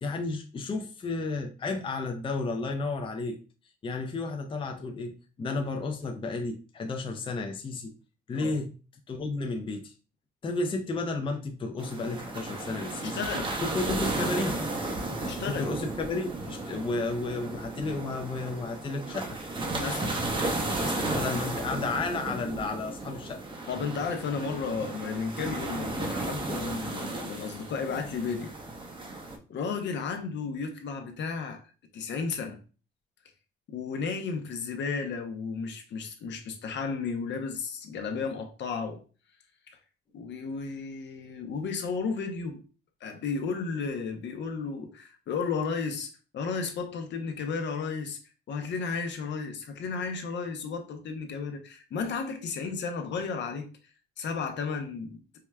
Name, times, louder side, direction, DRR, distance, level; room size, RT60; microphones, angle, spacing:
voice 1, 0.0-3.4 3.8-7.9 8.3-8.8 9.1-9.9 10.4-13.2 13.6-14.6 15.4-19.4 21.1-23.4 24.7-24.8, left 3 dB, 25° left, 0.4 m, -32 dB
sound 1, 11.8-29.4, right 2 dB, 25° right, 0.6 m, -34 dB
voice 2, 13.0-13.5 15.1-15.7 19.7-20.2 20.8-21.2 23.7-28.5 29.5-31.6 31.9-32.6 33.7-39.0 39.7-39.8 40.1-42.6 43.0-48.2 48.5-53.7 54.2-55.2, left 5 dB, 65° left, 0.6 m, -33 dB
4.6 x 2.1 x 2.2 m
cardioid pair, 90°, 20 cm